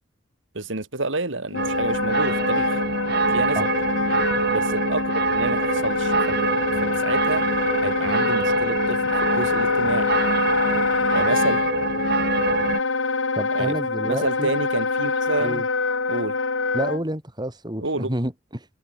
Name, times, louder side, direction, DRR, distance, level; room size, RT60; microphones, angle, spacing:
voice 1, 0.5-2.8 3.3-3.7 4.5-6.5 6.8-7.4 7.8-10.1 11.1-11.6 13.5-15.6 16.1-16.4 17.8-18.1, right 2 dB, 75° right, 3.0 m, -29 dB
Wind instrument woodwind instrument, 1.5-17.0, left 3 dB, 85° left, 2.1 m, -25 dB
sound 1, 1.6-12.8, right 3 dB, 55° right, 2.9 m, -25 dB
voice 2, 13.4-14.5 15.4-15.6 16.7-18.7, right 1 dB, 20° right, 4.4 m, -29 dB
head